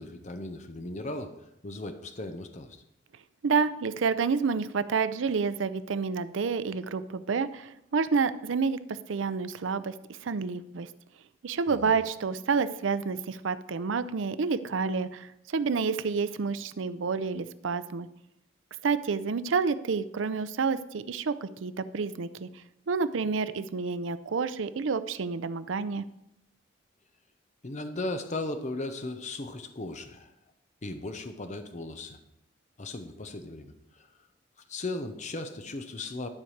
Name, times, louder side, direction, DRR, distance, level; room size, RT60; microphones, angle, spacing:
voice 1, 0.0-2.8 11.7-11.9 27.6-30.3 30.8-32.2 32.8-34.1 34.7-36.3, left 2 dB, 40° left, 8 dB, 0.7 m, -37 dB
voice 2, 3.4-9.9 10.2-10.9 11.4-18.1 18.8-22.5 22.9-26.0, right 5 dB, 85° right, 14 dB, 0.5 m, -29 dB
12.0 x 4.6 x 6.5 m, 0.82 s
head